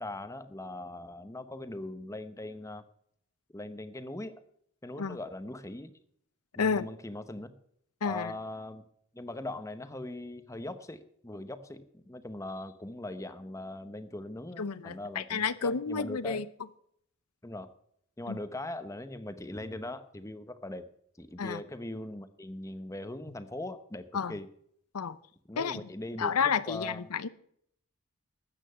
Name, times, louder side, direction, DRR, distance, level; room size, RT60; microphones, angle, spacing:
voice 1, 0.0-2.8 3.5-4.3 4.8-5.9 6.6-7.5 8.0-8.8 9.1-16.4 17.4-17.7 18.2-20.9 21.2-24.5 25.5-27.1, left 1 dB, 15° left, 0.8 m, -40 dB
voice 2, 8.0-8.3 14.6-16.5 18.3-18.4 21.4-21.6 24.1-24.4 24.9-25.2 25.6-25.8 26.2-27.3, left 5 dB, 85° left, 0.7 m, -30 dB
13.0 x 8.8 x 5.6 m
head